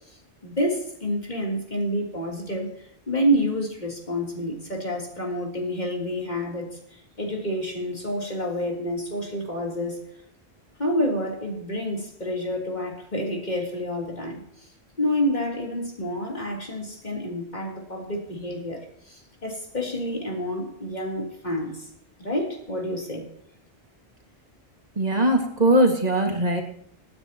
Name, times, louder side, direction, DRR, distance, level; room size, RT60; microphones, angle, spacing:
voice 1, 0.4-10.0 10.8-14.7 15.0-21.9 22.2-23.3, equal, 45° left, -1 dB, 3.5 m, -28 dB
voice 2, 25.0-26.6, right 1 dB, 40° right, 2 dB, 2.1 m, -20 dB
25.0 x 9.8 x 3.0 m, 0.70 s
omnidirectional pair, 1.1 m